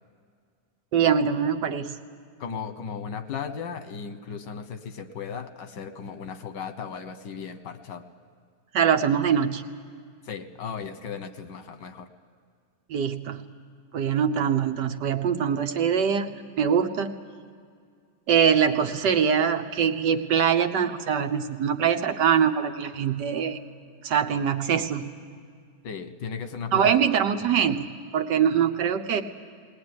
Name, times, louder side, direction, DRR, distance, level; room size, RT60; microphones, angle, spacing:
voice 1, 0.9-2.0 8.7-9.6 12.9-13.4 13.9-17.1 18.3-23.6 24.0-25.1 26.7-29.2, right 7 dB, 80° right, 6 dB, 1.7 m, -23 dB
voice 2, 2.4-8.0 10.2-12.1 25.8-26.9 27.6-27.7, left 6 dB, 85° left, 9 dB, 1.8 m, -36 dB
20.0 x 19.5 x 9.7 m, 2.1 s
omnidirectional pair, 1.8 m